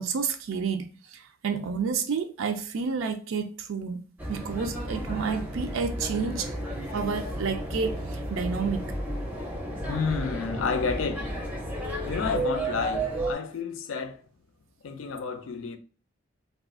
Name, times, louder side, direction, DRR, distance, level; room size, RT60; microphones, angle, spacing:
voice 1, 0.0-6.5 6.9-8.9, right 5 dB, 80° right, 0.4 m, -30 dB
sound 1, 4.2-13.3, right 1 dB, 10° right, 0.5 m, -32 dB
voice 2, 9.8-14.2 14.8-15.8, left 5 dB, 80° left, 0.4 m, -31 dB
2.4 x 2.3 x 3.5 m
head